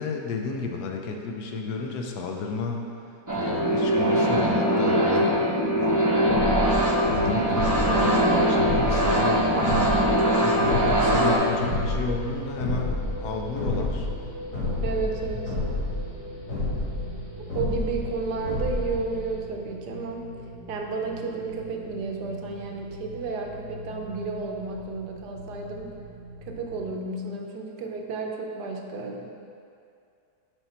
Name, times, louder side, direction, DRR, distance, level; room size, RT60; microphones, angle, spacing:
voice 1, 0.0-2.8 3.3-5.4 5.8-6.1 7.1-9.9 10.4-14.1, left 4 dB, 75° left, 2 dB, 1.2 m, -31 dB
sound 1, 3.3-11.4, right 1 dB, 25° right, 0.4 m, -22 dB
sound 2, 6.3-19.4, left 2 dB, 55° left, 1.8 m, -30 dB
sound 3, 7.4-26.9, equal, 65° right, 1.9 m, -41 dB
voice 2, 10.5-10.9 13.7-13.8 14.8-15.6 17.4-20.3 20.7-25.9 26.4-29.3, right 4 dB, 90° right, 2 dB, 1.3 m, -32 dB
6.6 x 4.7 x 4.3 m, 2.4 s
omnidirectional pair, 1.7 m